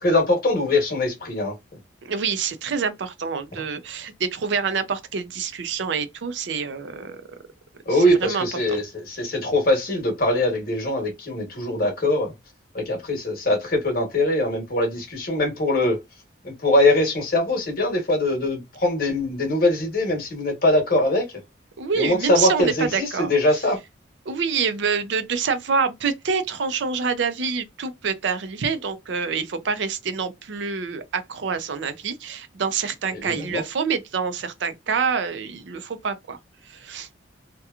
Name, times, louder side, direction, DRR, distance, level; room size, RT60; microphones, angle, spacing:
voice 1, 0.0-1.5 7.9-12.3 12.7-16.0 16.4-21.3 22.0-23.8 33.1-33.6, left 1 dB, 50° left, 1.0 m, -22 dB
voice 2, 2.0-7.2 7.9-8.8 21.8-23.3 24.3-36.4 36.7-37.1, right 5 dB, 75° right, 0.5 m, -26 dB
2.8 x 2.2 x 2.3 m
head